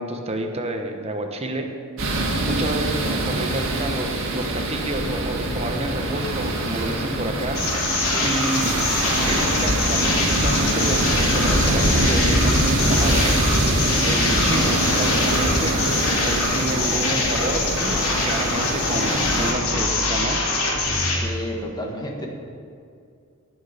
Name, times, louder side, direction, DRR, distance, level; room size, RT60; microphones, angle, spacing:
voice 1, 0.0-1.7 2.4-8.9 9.2-13.6 14.0-15.8 16.2-20.4, right 2 dB, 30° right, 4 dB, 1.0 m, -29 dB
sound 1, 2.0-19.5, right 1 dB, 65° right, 1.7 m, -24 dB
sound 2, 7.5-21.2, left 3 dB, 85° left, 2.8 m, -24 dB
voice 2, 21.1-22.3, left 1 dB, 20° left, 0 dB, 1.6 m, -32 dB
18.5 x 6.2 x 5.2 m, 2.4 s
head